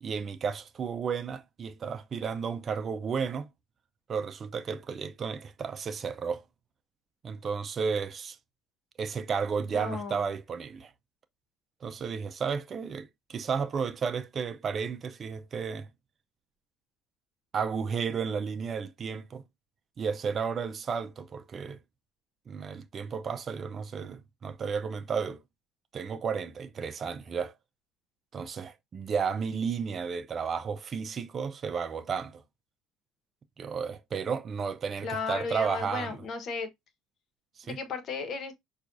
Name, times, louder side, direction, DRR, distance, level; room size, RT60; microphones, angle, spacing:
voice 1, 0.0-3.5 4.1-6.4 7.2-8.4 9.0-10.9 11.8-15.9 17.5-19.4 20.0-21.8 22.5-25.4 25.9-27.5 28.3-32.4 33.6-36.2 37.6-37.8, right 6 dB, 40° right, 0.5 m, -33 dB
voice 2, 9.7-10.2 35.0-36.7 37.6-38.5, left 5 dB, 50° left, 1.1 m, -35 dB
5.9 x 2.4 x 2.6 m
supercardioid pair, 90°, 0 cm